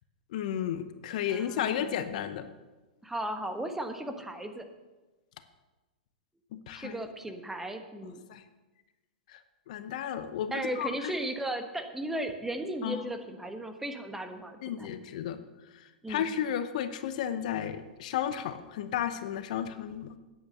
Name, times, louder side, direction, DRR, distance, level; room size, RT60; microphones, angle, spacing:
voice 1, 0.3-2.5 6.5-7.1 8.3-8.4 9.3-9.4 9.7-11.1 12.8-13.1 14.6-15.4 16.1-20.2, left 9 dB, 60° left, 11 dB, 0.9 m, -33 dB
voice 2, 1.3-2.0 3.0-4.6 6.7-8.2 10.5-14.9 16.0-16.3, right 1 dB, 5° right, 6 dB, 1.3 m, -36 dB
9.6 x 8.8 x 6.7 m, 1.2 s
hypercardioid pair, 105°, 5 cm